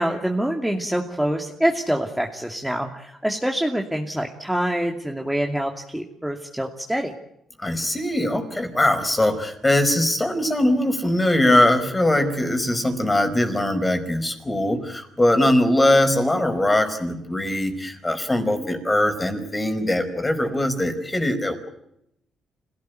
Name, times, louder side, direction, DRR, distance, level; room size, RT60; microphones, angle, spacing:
voice 1, 0.0-7.1 18.6-18.7, right 1 dB, 5° right, 2 dB, 2.6 m, -25 dB
voice 2, 7.6-21.7, left 1 dB, 15° left, 8 dB, 5.0 m, -21 dB
26.5 x 17.5 x 9.4 m, 0.80 s
cardioid pair, 90°, 0 cm